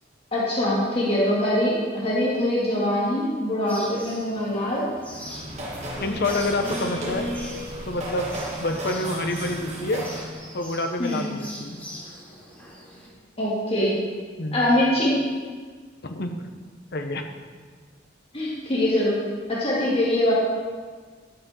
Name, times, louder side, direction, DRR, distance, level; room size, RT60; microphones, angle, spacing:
voice 1, 0.3-4.9 11.0-11.3 13.4-14.0 14.5-15.2 18.3-19.2 19.5-20.3, left 1 dB, 30° left, -6 dB, 2.0 m, -23 dB
sound 1, 3.6-13.1, equal, 10° left, 3.3 m, -39 dB
sound 2, 5.0-10.4, right 1 dB, 40° right, 1.9 m, -34 dB
voice 2, 6.0-7.3 7.9-8.3 8.6-10.1 10.5-11.8 14.4-14.6 16.0-16.4 16.9-17.3, left 2 dB, 60° left, 6 dB, 0.9 m, -27 dB
11.5 x 5.8 x 5.6 m, 1.5 s
head